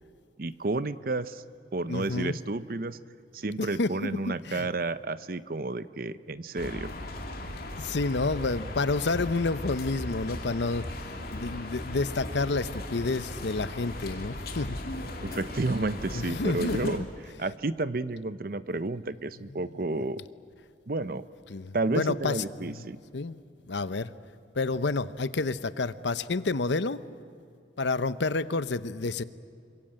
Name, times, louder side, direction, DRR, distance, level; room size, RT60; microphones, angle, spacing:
voice 1, 0.4-1.4 1.7-3.0 3.3-6.9 15.2-17.0 17.4-20.2 20.9-21.2 21.7-23.0, right 2 dB, 50° right, 14 dB, 0.7 m, -31 dB
voice 2, 1.9-2.4 3.6-4.7 7.8-10.9 11.3-14.8 16.1-17.1 21.5-22.8 23.1-23.4 23.7-24.1 24.6-27.0 27.8-29.2, left 3 dB, 75° left, 14 dB, 0.8 m, -29 dB
sound 1, 6.6-17.0, left 1 dB, 55° left, 2.7 m, -37 dB
26.5 x 23.5 x 8.9 m, 2.4 s
head